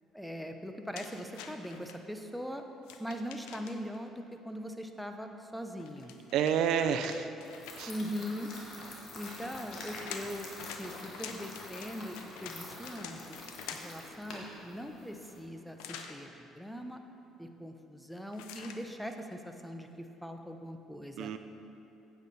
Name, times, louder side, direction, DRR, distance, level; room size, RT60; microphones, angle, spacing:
voice 1, 0.1-2.6 3.0-6.1 7.9-8.5 9.1-10.5 10.7-13.4 13.7-17.0 17.4-21.3, equal, ahead, 5 dB, 0.7 m, -41 dB
sound 1, 0.9-2.0 2.8-4.0 5.8-8.0 9.4-14.1 15.8-16.2 18.3-18.8, left 7 dB, 90° left, 0.6 m, -47 dB
voice 2, 6.3-7.3 7.8-7.9 21.2-21.4, right 8 dB, 70° right, 9 dB, 0.4 m, -29 dB
sound 2, 7.4-15.4, left 2 dB, 60° left, 1.8 m, -47 dB
9.6 x 8.3 x 4.2 m, 2.7 s
cardioid pair, 95°, 0 cm